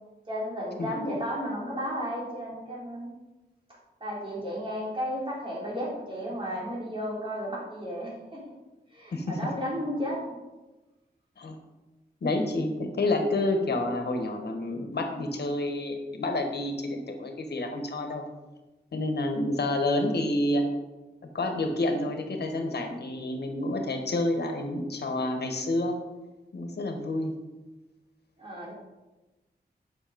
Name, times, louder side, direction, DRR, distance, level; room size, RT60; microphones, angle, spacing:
voice 1, 0.3-3.2 4.0-8.5 8.9-10.4 28.4-28.7, equal, 30° right, -5 dB, 3.7 m, -33 dB
voice 2, 12.2-18.2 18.9-20.7 21.2-26.0 26.5-27.3, left 2 dB, 70° left, 4 dB, 1.5 m, -29 dB
10.5 x 6.3 x 5.3 m, 1.1 s
wide cardioid pair, 135°, 17 cm